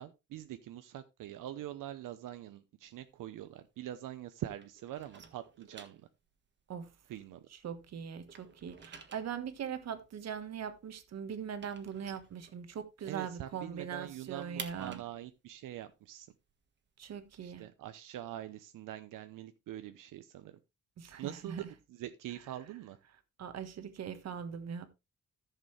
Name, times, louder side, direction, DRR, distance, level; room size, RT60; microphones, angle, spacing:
voice 1, 0.0-6.0 7.1-7.5 13.0-16.3 17.4-20.5 21.2-23.0, right 12 dB, 85° right, 0.8 m, -44 dB
sound 1, 2.8-4.3 4.6-7.8 8.1-13.1 13.4-13.5 13.8-17.5, right 5 dB, 35° right, 1.4 m, -52 dB
voice 2, 7.5-15.0 17.0-17.7 21.0-21.7 23.4-24.9, right 7 dB, 55° right, 1.5 m, -41 dB
14.0 x 6.7 x 3.2 m
cardioid pair, 150°, 31 cm